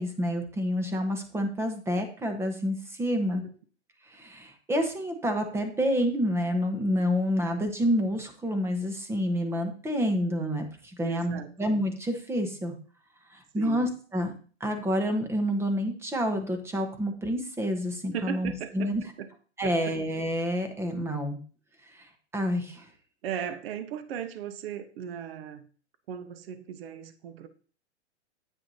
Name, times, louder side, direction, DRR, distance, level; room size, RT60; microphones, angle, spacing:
voice 1, 0.0-3.4 4.1-12.7 13.3-14.3 14.6-19.0 19.6-21.4 21.9-22.9, equal, 5° right, 5 dB, 1.0 m, -28 dB
voice 2, 11.0-11.5 13.5-13.9 18.1-18.9 19.2-19.3 19.6-20.0 23.2-25.7 26.1-27.5, right 8 dB, 55° right, 10 dB, 1.2 m, -37 dB
9.7 x 7.9 x 2.8 m, 0.40 s
hypercardioid pair, 140°, 36 cm